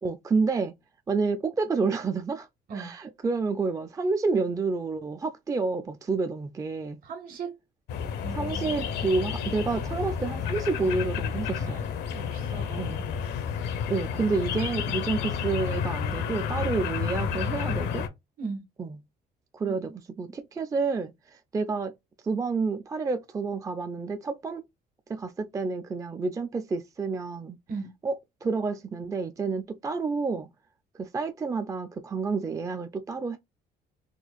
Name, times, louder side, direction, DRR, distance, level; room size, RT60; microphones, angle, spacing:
voice 1, 0.0-0.7 1.1-2.5 2.7-7.0 8.3-11.8 12.8-13.0 13.9-18.1 18.8-19.0 19.5-19.9 20.2-21.9 22.2-24.6 25.1-27.6 28.0-30.5 31.0-33.4, right 4 dB, 20° right, 0.4 m, -29 dB
voice 2, 7.0-7.5 8.2-8.9 11.6-11.8 12.2-12.9 18.4-18.6 19.7-20.0 27.7-27.9, right 5 dB, 60° right, 1.6 m, -38 dB
sound 1, 7.9-18.1, left 7 dB, 85° left, 0.8 m, -31 dB
4.4 x 2.4 x 2.3 m
cardioid pair, 110°, 17 cm